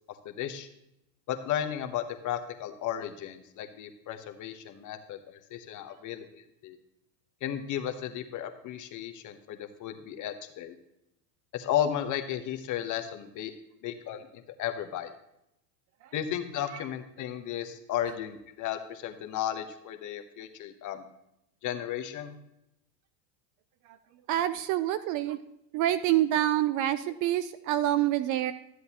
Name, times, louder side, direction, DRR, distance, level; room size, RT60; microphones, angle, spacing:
voice 1, 0.2-0.7 1.3-6.2 6.6-6.8 7.4-10.8 11.5-13.5 13.8-15.1 16.1-21.0 21.6-22.3, left 10 dB, 40° left, 8 dB, 1.1 m, -34 dB
voice 2, 24.3-25.4 25.7-28.5, right 13 dB, 40° right, 13 dB, 0.5 m, -27 dB
13.0 x 7.8 x 2.9 m, 0.82 s
supercardioid pair, 115°, 48 cm